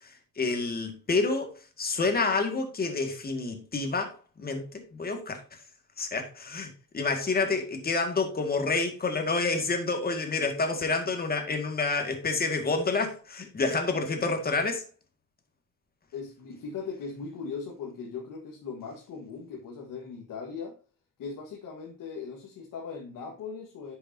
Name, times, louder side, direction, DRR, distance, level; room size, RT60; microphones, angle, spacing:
voice 1, 0.4-5.4 6.0-14.8, left 3 dB, 25° left, 2.0 m, -28 dB
voice 2, 16.1-20.8 21.2-24.0, left 5 dB, 65° left, 1.7 m, -39 dB
10.0 x 6.8 x 2.8 m
cardioid pair, 140°, 34 cm